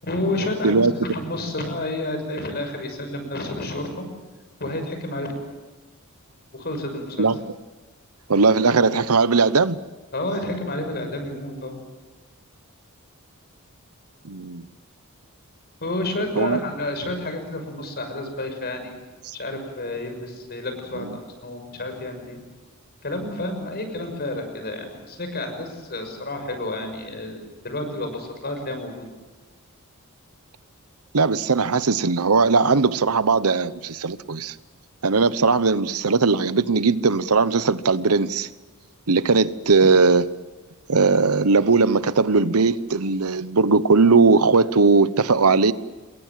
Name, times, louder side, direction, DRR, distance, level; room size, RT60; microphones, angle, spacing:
voice 1, 0.0-4.1 4.6-5.3 6.5-7.3 10.1-11.8 15.8-18.9 19.3-22.4 23.0-29.1 39.8-39.9, left 1 dB, 50° left, 6.1 m, -30 dB
voice 2, 8.3-9.8 14.2-14.7 16.4-16.6 31.1-34.5 35.0-38.5 39.1-40.3 40.9-45.7, right 4 dB, 90° right, 1.0 m, -19 dB
27.5 x 22.5 x 7.6 m
head